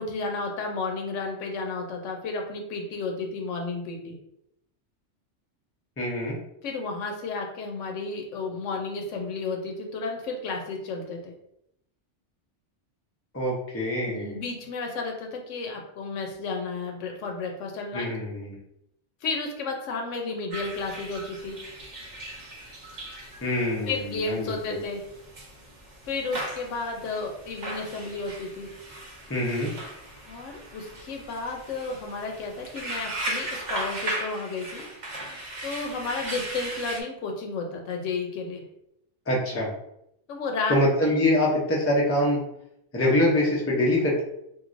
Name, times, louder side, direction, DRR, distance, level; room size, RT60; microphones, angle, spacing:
voice 1, 0.0-4.2 6.6-11.3 14.1-18.1 19.2-21.6 23.9-25.1 26.0-28.7 30.3-35.3 35.6-38.6 40.3-40.8, left 3 dB, 80° left, 2 dB, 1.0 m, -32 dB
voice 2, 6.0-6.4 13.3-14.4 17.9-18.6 23.4-24.8 29.3-29.7 39.3-39.7 40.7-42.4 42.9-44.2, left 1 dB, 20° left, -3 dB, 0.4 m, -24 dB
sound 1, 20.5-37.0, right 1 dB, 45° right, 0.7 m, -37 dB
3.1 x 2.6 x 2.5 m, 0.79 s
omnidirectional pair, 1.2 m